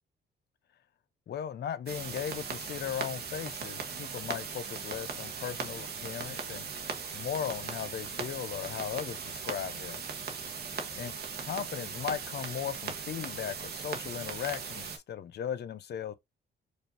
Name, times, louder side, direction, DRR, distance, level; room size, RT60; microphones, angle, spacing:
voice 1, 1.3-10.0 11.0-11.1 11.4-16.1, left 9 dB, 55° left, 0.7 m, -37 dB
sound 1, 1.9-15.0, right 5 dB, 55° right, 1.1 m, -39 dB
5.0 x 2.6 x 2.6 m
cardioid pair, 90°, 20 cm